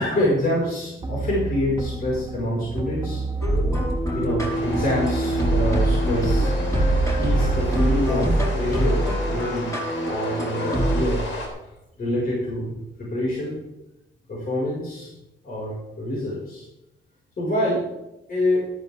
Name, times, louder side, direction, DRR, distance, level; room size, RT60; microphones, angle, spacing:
voice 1, 0.0-3.2 4.1-6.5 7.2-9.7 10.1-11.3 12.0-13.5 14.3-15.1 15.4-16.6 17.4-17.8 18.3-18.6, left 1 dB, 45° left, -5 dB, 5.3 m, -26 dB
sound 1, 1.0-8.6, right 3 dB, 25° right, 2.2 m, -31 dB
sound 2, 3.4-11.0, right 1 dB, 15° left, 5.2 m, -23 dB
sound 3, 4.5-11.5, left 2 dB, 70° left, 3.5 m, -34 dB
14.0 x 12.5 x 3.6 m, 0.91 s
cardioid pair, 90°, 20 cm